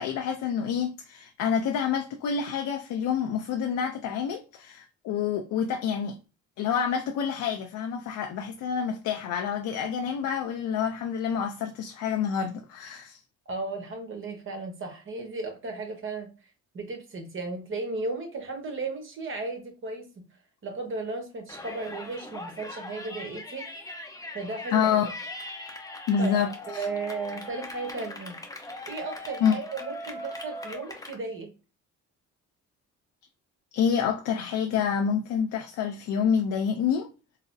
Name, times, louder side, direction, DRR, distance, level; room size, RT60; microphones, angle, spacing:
voice 1, 0.0-6.2 6.6-13.2 24.7-25.1 26.1-26.8 29.4-29.6 33.7-37.1, left 7 dB, 75° left, 0.5 m, -27 dB
voice 2, 13.5-16.3 16.7-20.2 20.6-23.7 24.3-25.1 26.2-26.3 26.7-28.4 28.9-31.5, right 3 dB, 40° right, 1.1 m, -35 dB
Yell, 21.5-31.2, left 2 dB, 10° left, 0.7 m, -40 dB
3.9 x 2.0 x 2.6 m
cardioid pair, 90°, 30 cm